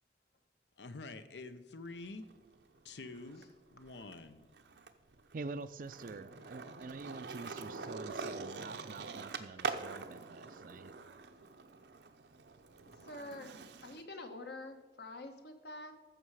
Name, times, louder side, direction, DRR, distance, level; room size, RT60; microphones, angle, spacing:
voice 1, 0.8-2.3 2.8-3.4 3.7-4.5, left 3 dB, 85° left, 10 dB, 0.8 m, -47 dB
Skateboard, 1.9-3.4 3.8-14.0, right 4 dB, 75° right, 0.7 m, -45 dB
voice 2, 5.3-10.9, right 3 dB, 50° right, 14 dB, 0.4 m, -46 dB
voice 3, 13.0-13.5 13.8-15.9, left 2 dB, 65° left, 6 dB, 1.2 m, -46 dB
14.0 x 6.6 x 4.8 m, 1.3 s
head